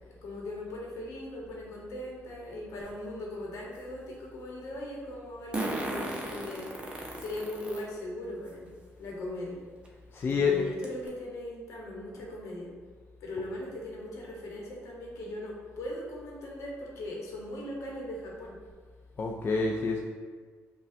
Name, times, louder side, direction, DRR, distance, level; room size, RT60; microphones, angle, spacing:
voice 1, 0.2-9.6 10.2-12.7 13.2-18.6, left 1 dB, 75° left, -2 dB, 0.9 m, -39 dB
Fart, 2.8-2.9 5.5-7.8 8.5-8.6 9.8-9.9 10.3-10.4 10.8-11.1, right 1 dB, 20° right, 0.7 m, -35 dB
voice 2, 10.1-10.5 19.2-20.0, left 4 dB, 45° left, -1 dB, 0.4 m, -27 dB
5.4 x 2.3 x 2.5 m, 1.5 s
cardioid pair, 75°, 5 cm